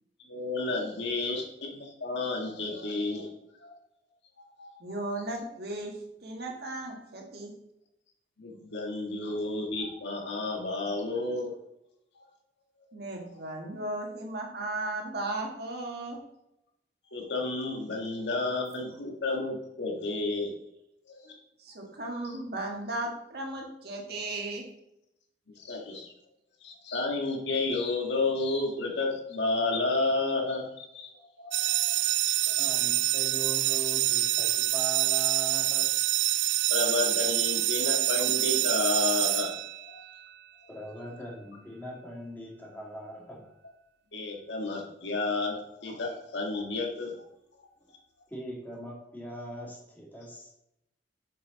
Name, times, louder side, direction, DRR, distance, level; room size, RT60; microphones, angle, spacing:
voice 1, 0.3-3.3 3.6-3.8 4.6-4.8 8.4-11.5 12.9-13.0 13.4-13.5 17.1-20.5 21.1-21.3 22.2-22.3 25.6-26.1 26.6-32.7 36.7-39.5 39.8-40.0 44.1-47.1, left 3 dB, 85° left, 0 dB, 1.8 m, -31 dB
voice 2, 4.8-5.9 6.2-7.5 12.9-16.2 21.6-24.6, right 2 dB, 65° right, 0 dB, 1.8 m, -36 dB
sound 1, 31.5-40.2, right 15 dB, 85° right, 0.3 m, -26 dB
voice 3, 32.2-35.9 40.7-43.5 47.8-47.9 48.3-50.5, right 1 dB, 10° left, -4 dB, 2.3 m, -41 dB
7.3 x 6.7 x 4.0 m, 0.83 s
head